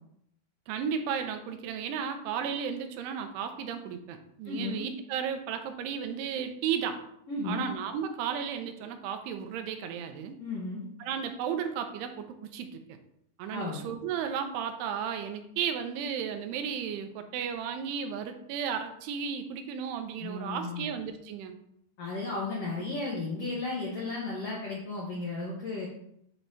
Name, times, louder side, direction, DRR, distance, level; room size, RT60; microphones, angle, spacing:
voice 1, 0.7-7.0 7.4-10.4 11.0-13.0 13.4-21.6, right 7 dB, 90° right, 7 dB, 2.7 m, -34 dB
voice 2, 4.4-4.8 7.3-7.7 10.4-10.9 13.5-13.8 20.2-20.9 22.0-25.9, left 3 dB, 85° left, -4 dB, 1.4 m, -34 dB
8.9 x 4.3 x 2.7 m, 0.74 s
omnidirectional pair, 4.6 m